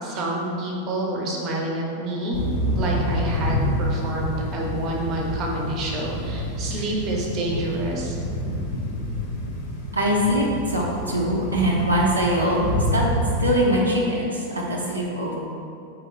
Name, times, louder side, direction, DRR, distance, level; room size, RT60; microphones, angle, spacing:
voice 1, 0.0-2.4 2.7-8.2, right 1 dB, 35° right, -1 dB, 0.7 m, -28 dB
sound 1, 2.3-13.5, equal, 50° left, 0.8 m, -28 dB
voice 2, 9.9-13.1 13.4-15.4, equal, 80° right, -4 dB, 0.5 m, -22 dB
4.3 x 3.0 x 3.8 m, 2.6 s
figure-of-eight pair, 90°, 0 cm